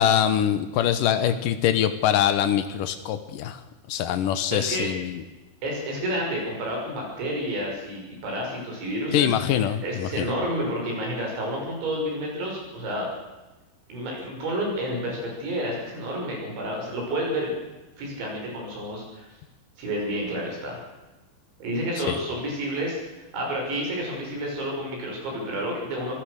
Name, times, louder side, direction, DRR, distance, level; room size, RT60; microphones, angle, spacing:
voice 1, 0.0-3.6 3.9-5.2 9.1-10.3 22.1-22.2, left 10 dB, 85° left, 10 dB, 1.9 m, -23 dB
voice 2, 4.5-4.9 5.6-13.1 13.9-17.5 18.0-19.3 19.8-20.8 21.6-26.2, equal, 65° right, -1 dB, 8.4 m, -30 dB
26.5 x 16.5 x 6.6 m, 1.1 s
omnidirectional pair, 5.6 m